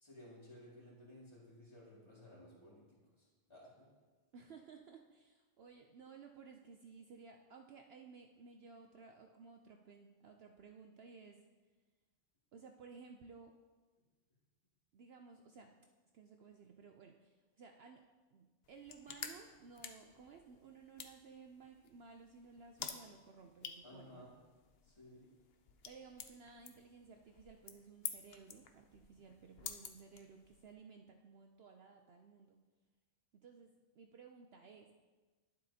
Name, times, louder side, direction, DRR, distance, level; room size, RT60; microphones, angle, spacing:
voice 1, 0.0-3.9 23.8-24.4 24.8-25.3, left 1 dB, 20° left, -5 dB, 2.1 m, -57 dB
voice 2, 4.3-11.4 12.5-13.6 14.9-15.7 16.1-18.0 18.3-24.3 25.9-32.6 33.3-34.9, right 5 dB, 65° right, 4 dB, 0.7 m, -57 dB
sound 1, 18.6-30.7, left 7 dB, 55° left, 0.7 m, -51 dB
11.5 x 7.6 x 2.8 m, 1.3 s
omnidirectional pair, 1.4 m